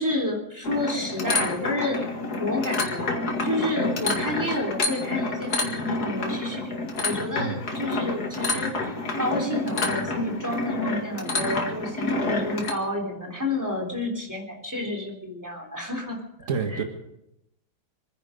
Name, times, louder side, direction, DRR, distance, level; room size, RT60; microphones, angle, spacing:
voice 1, 0.0-2.0 2.4-6.6 7.0-16.8, left 1 dB, 10° right, 1 dB, 3.3 m, -30 dB
sound 1, 0.6-12.7, left 2 dB, 50° left, 2.5 m, -28 dB
voice 2, 16.5-16.8, right 5 dB, 40° right, 4 dB, 2.1 m, -28 dB
26.5 x 10.5 x 5.2 m, 0.83 s
omnidirectional pair, 2.2 m